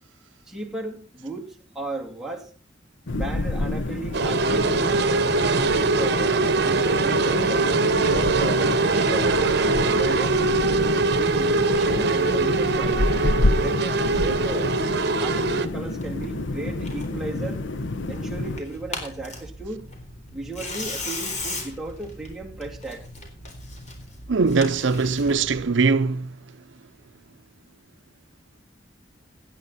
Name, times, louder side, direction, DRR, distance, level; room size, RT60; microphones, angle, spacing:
voice 1, 0.5-2.5 3.1-4.9 5.4-7.6 8.0-10.4 11.2-13.0 13.6-17.7 18.1-19.9 20.3-23.0, right 2 dB, 5° right, 3.0 m, -35 dB
sound 1, 3.1-18.6, left 2 dB, 85° left, 0.9 m, -28 dB
sound 2, 4.1-15.7, right 3 dB, 60° right, 1.2 m, -22 dB
Tearing, 16.0-25.6, left 2 dB, 40° left, 4.0 m, -38 dB
voice 2, 24.3-26.3, right 4 dB, 80° right, 0.6 m, -21 dB
17.5 x 10.5 x 4.2 m
head